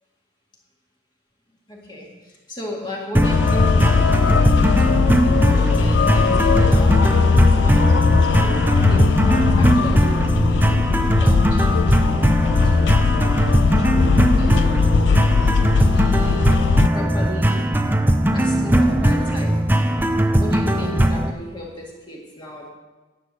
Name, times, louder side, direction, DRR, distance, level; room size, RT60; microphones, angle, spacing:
voice 1, 1.7-8.6 8.9-10.7 11.2-11.9 12.7-13.0 13.8-13.9 14.3-14.8 15.8-16.5 16.9-17.7 18.3-19.6 20.3-22.7, equal, 20° left, -3 dB, 2.0 m, -34 dB
sound 1, 3.1-21.3, right 1 dB, 10° right, 0.5 m, -19 dB
sound 2, 3.2-16.9, left 5 dB, 60° left, 0.3 m, -19 dB
10.5 x 8.6 x 6.4 m, 1.2 s
head